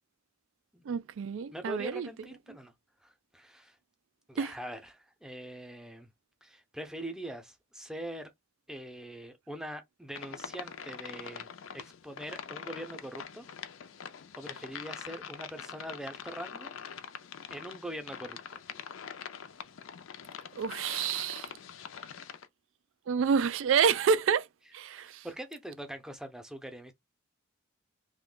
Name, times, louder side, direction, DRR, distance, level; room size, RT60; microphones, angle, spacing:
voice 1, 0.9-2.1 4.4-4.5 20.6-21.5 23.1-24.5 24.7-25.3, right 6 dB, 70° right, 0.3 m, -28 dB
voice 2, 1.5-2.7 3.0-3.8 4.3-6.1 6.4-8.3 8.7-13.5 14.4-16.7 17.5-18.6 25.0-26.9, right 1 dB, 5° right, 0.6 m, -43 dB
sound 1, 10.1-22.5, left 7 dB, 75° left, 0.5 m, -44 dB
3.0 x 2.2 x 3.8 m
head